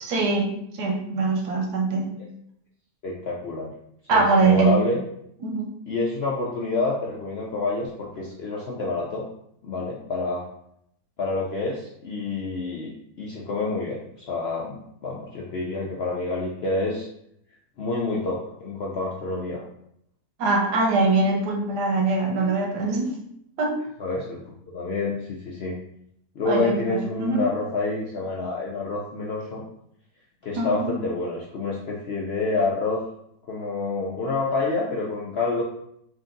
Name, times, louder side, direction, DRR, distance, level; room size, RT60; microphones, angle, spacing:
voice 1, 0.0-2.1 4.1-4.8 5.4-5.7 20.4-23.1 23.6-23.8 26.4-27.5 30.6-30.9, right 3 dB, 85° right, 1 dB, 1.3 m, -23 dB
voice 2, 3.0-3.7 4.1-5.0 5.9-9.3 9.6-10.4 11.2-12.9 13.2-14.0 14.3-17.1 17.8-19.6 24.0-25.7 26.4-29.6 30.4-33.0 33.5-35.6, left 3 dB, 65° left, -4 dB, 0.6 m, -28 dB
3.8 x 2.6 x 3.7 m, 0.74 s
omnidirectional pair, 1.7 m